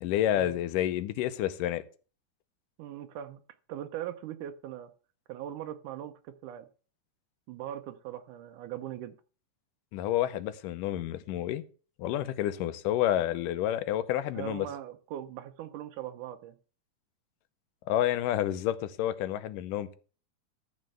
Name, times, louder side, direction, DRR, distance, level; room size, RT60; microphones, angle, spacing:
voice 1, 0.0-1.8 9.9-11.6 12.0-14.7 17.9-20.0, left 12 dB, 85° left, 2.4 m, -29 dB
voice 2, 2.8-3.4 3.7-4.9 5.3-6.7 7.5-9.2 14.3-16.6, right 11 dB, 80° right, 2.2 m, -40 dB
13.0 x 4.5 x 7.7 m
omnidirectional pair, 3.7 m